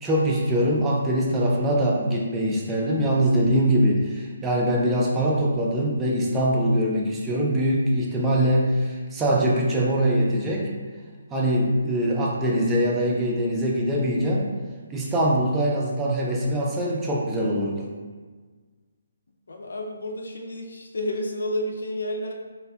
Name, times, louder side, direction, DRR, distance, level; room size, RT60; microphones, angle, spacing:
voice 1, 0.0-10.7 11.3-14.5 14.9-17.9, equal, 10° right, -3 dB, 0.5 m, -23 dB
voice 2, 19.5-22.3, left 1 dB, 60° left, 1 dB, 0.6 m, -30 dB
4.2 x 3.2 x 2.4 m, 1.5 s
figure-of-eight pair, 140°, 0 cm